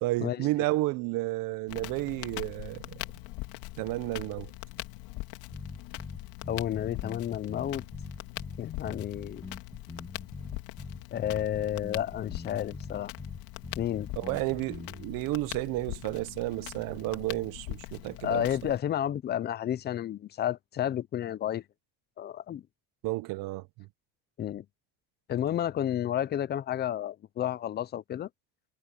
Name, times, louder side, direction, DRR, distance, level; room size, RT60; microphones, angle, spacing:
voice 1, 0.0-3.0 3.8-4.5 14.1-18.7 23.0-23.9, right 20 dB, 65° right, 0.9 m, -32 dB
Crackle, 1.7-18.8, left 19 dB, 80° left, 2.9 m, -42 dB
sound 1, 5.5-15.1, left 3 dB, 10° left, 1.6 m, -43 dB
voice 2, 6.5-7.8 8.6-9.4 11.1-13.1 13.8-14.1 18.2-21.6 22.2-22.6 24.4-24.6 25.3-28.3, left 11 dB, 30° left, 0.5 m, -31 dB
cardioid pair, 150°, 36 cm